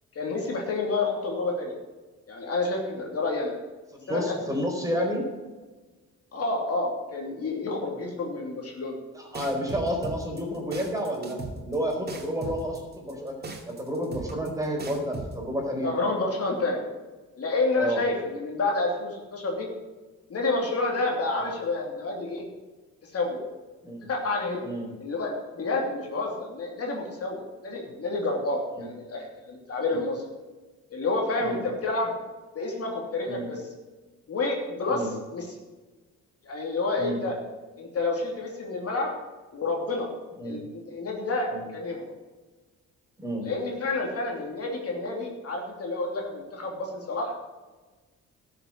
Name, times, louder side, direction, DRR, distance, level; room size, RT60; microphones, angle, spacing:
voice 1, 0.1-1.7 2.3-3.5 4.1-4.4 6.3-9.0 15.8-16.8 17.4-19.7 20.3-22.4 23.0-23.4 24.1-24.6 25.0-30.2 30.9-32.1 32.5-33.6 34.3-35.5 36.4-37.3 37.8-39.1 39.5-40.1 40.4-42.1 43.4-47.3, left 3 dB, 50° left, 0 dB, 2.9 m, -29 dB
voice 2, 3.9-5.3 9.1-11.4 11.6-13.4 13.7-15.9 17.8-18.0 21.4-21.5 23.8-24.1 24.6-24.9 28.8-28.9 29.9-30.0 31.4-31.6 33.3-33.5 34.9-35.1 37.0-37.2 40.4-40.6 41.5-41.6 43.2-43.5, equal, 10° right, 0 dB, 4.4 m, -30 dB
sound 1, 9.3-15.3, right 3 dB, 30° right, 2.5 m, -37 dB
12.5 x 7.0 x 7.7 m, 1.3 s
cardioid pair, 90°, 30 cm